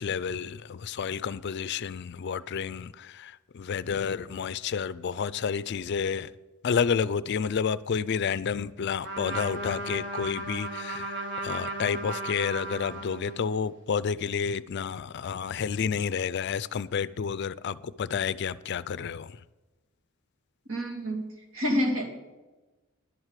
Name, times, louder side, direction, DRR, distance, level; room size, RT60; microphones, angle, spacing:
voice 1, 0.0-6.3 6.6-19.4, left 6 dB, 50° left, 0.4 m, -30 dB
Trumpet, 9.0-13.6, right 2 dB, 55° right, 1.9 m, -35 dB
voice 2, 20.7-22.1, equal, 70° right, 2.8 m, -28 dB
11.0 x 8.0 x 7.4 m
head